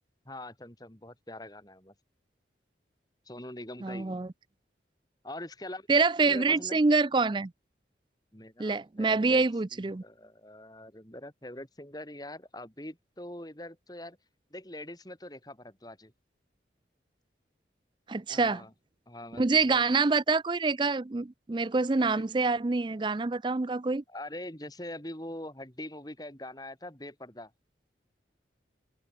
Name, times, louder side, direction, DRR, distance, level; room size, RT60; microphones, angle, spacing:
voice 1, 0.3-1.9 3.3-4.1 5.2-5.9 6.2-6.8 8.3-9.4 9.7-14.2 14.5-16.1 18.3-18.7 19.1-19.8 22.0-22.3 24.1-27.5, left 1 dB, 20° left, 4.0 m, -43 dB
voice 2, 3.8-4.3 5.9-7.5 8.6-10.0 18.1-18.6 19.4-24.0, right 3 dB, 25° right, 0.4 m, -26 dB
head